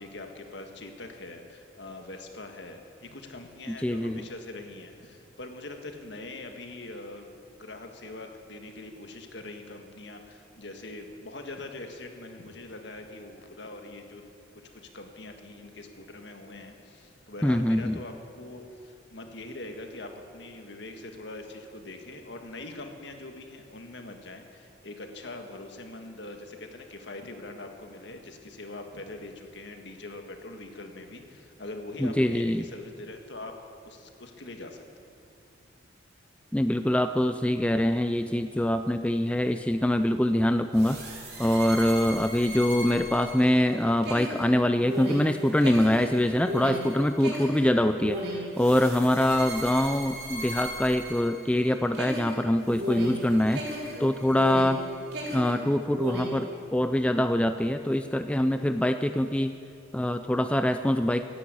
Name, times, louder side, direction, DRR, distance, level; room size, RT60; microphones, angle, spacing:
voice 1, 0.0-14.2 14.5-33.5 33.8-34.8, left 2 dB, 65° left, 4 dB, 1.6 m, -43 dB
voice 2, 3.7-4.3 17.4-18.0 32.0-32.6 36.5-41.0 41.4-53.6 54.0-54.8 55.3-59.6 59.9-61.2, left 1 dB, 5° left, 8 dB, 0.3 m, -24 dB
sound 1, 40.7-51.6 51.9-54.8 55.1-56.4, right 1 dB, 55° right, 3.7 m, -36 dB
16.0 x 10.0 x 8.3 m, 2.5 s
head